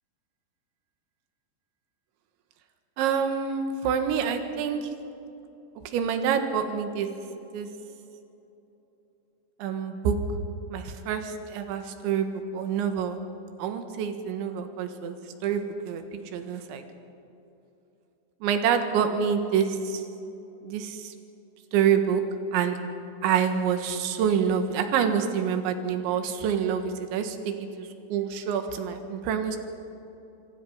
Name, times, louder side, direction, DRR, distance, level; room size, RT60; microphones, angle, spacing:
voice 1, 3.0-4.9 5.9-7.1 7.4-7.7 9.6-10.2 10.7-13.2 13.6-16.8 18.4-20.0 20.6-21.1 21.7-22.2 22.5-22.8 23.2-29.6, right 7 dB, 75° right, 7 dB, 3.8 m, -27 dB
26.0 x 24.0 x 5.6 m, 3.0 s
omnidirectional pair, 5.4 m